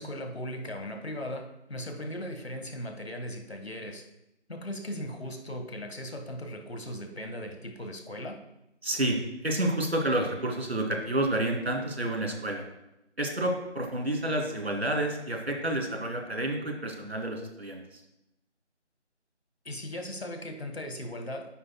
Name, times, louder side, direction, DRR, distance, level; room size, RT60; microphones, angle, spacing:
voice 1, 0.0-4.0 4.5-8.4 19.7-21.5, left 1 dB, 60° left, 5 dB, 1.7 m, -38 dB
voice 2, 8.8-12.6 13.2-18.0, right 1 dB, 60° right, 1 dB, 2.8 m, -29 dB
12.5 x 10.0 x 2.3 m, 0.87 s
figure-of-eight pair, 165°, 36 cm